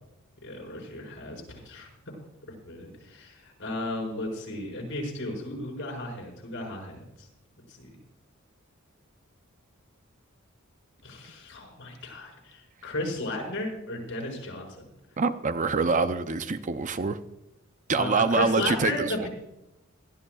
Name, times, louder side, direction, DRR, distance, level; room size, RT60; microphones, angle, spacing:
voice 1, 0.4-1.9 2.7-7.3 7.7-7.9 11.0-14.9 17.9-19.3, left 2 dB, 60° left, 0 dB, 5.6 m, -34 dB
voice 2, 15.2-17.2 17.9-19.3, right 4 dB, 35° right, 10 dB, 0.6 m, -25 dB
22.0 x 13.5 x 2.4 m, 0.87 s
head